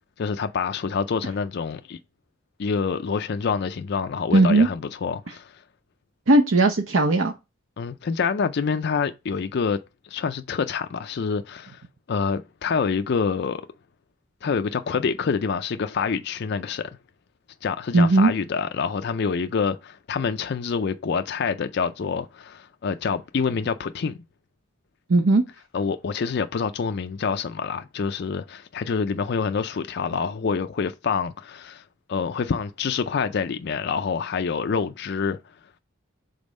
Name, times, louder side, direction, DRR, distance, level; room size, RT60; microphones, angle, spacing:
voice 1, 0.2-2.0 2.6-5.6 7.8-9.8 10.0-11.8 12.1-13.6 14.4-17.0 17.6-24.2 25.7-35.4, left 5 dB, 50° left, 0.4 m, -26 dB
voice 2, 4.3-4.7 6.3-7.3 17.9-18.3 25.1-25.4, right 2 dB, 65° right, 0.7 m, -17 dB
5.3 x 4.0 x 5.2 m
head